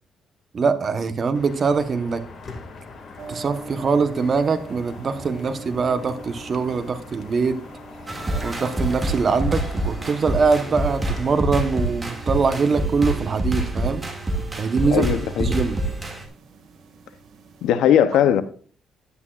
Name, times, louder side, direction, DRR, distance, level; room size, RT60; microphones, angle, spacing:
voice 1, 0.5-2.2 3.3-7.6 8.4-14.0 14.6-15.1 15.4-15.8, right 5 dB, 45° right, 1.0 m, -23 dB
sound 1, 1.3-11.3, left 3 dB, 50° left, 2.0 m, -41 dB
sound 2, 3.2-17.7, right 4 dB, 70° right, 1.9 m, -45 dB
sound 3, 8.1-16.2, right 1 dB, 20° right, 2.1 m, -26 dB
voice 2, 14.9-15.5 17.6-18.4, left 9 dB, 85° left, 0.7 m, -18 dB
11.0 x 9.7 x 2.4 m
cardioid pair, 90°, 0 cm